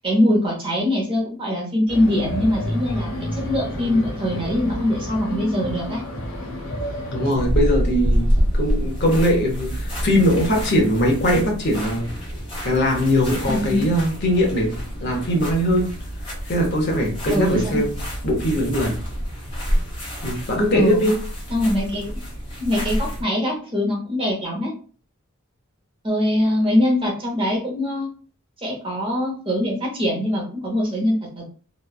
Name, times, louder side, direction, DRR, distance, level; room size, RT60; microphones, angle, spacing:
voice 1, 0.0-6.0 13.4-13.8 17.3-17.8 20.7-21.1 21.5-22.2 22.6-24.7 26.0-28.1 28.6-31.5, left 1 dB, 25° right, -1 dB, 0.7 m, -22 dB
sound 1, 1.9-7.3, equal, 80° left, 1.1 m, -30 dB
voice 2, 7.1-12.1 12.6-16.0 16.5-19.0 20.2-21.2, equal, 50° left, 0 dB, 0.8 m, -21 dB
sound 2, 7.3-23.2, equal, 25° left, 1.1 m, -27 dB
3.0 x 2.2 x 2.3 m, 0.40 s
head